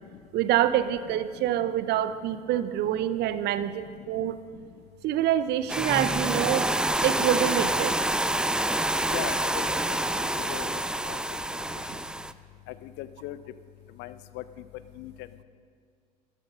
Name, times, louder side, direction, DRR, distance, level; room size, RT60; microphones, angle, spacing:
voice 1, 0.3-4.4 5.0-6.7 7.0-7.9, right 11 dB, 50° right, 13 dB, 0.7 m, -26 dB
sound 1, 5.7-12.3, right 1 dB, 5° right, 0.4 m, -27 dB
voice 2, 9.1-9.8 10.4-10.7 11.0-11.2 12.8-13.4 14.0-14.4 15.0-15.1, left 14 dB, 55° left, 14 dB, 0.6 m, -37 dB
13.5 x 12.0 x 5.6 m, 2.1 s
figure-of-eight pair, 60°, 21 cm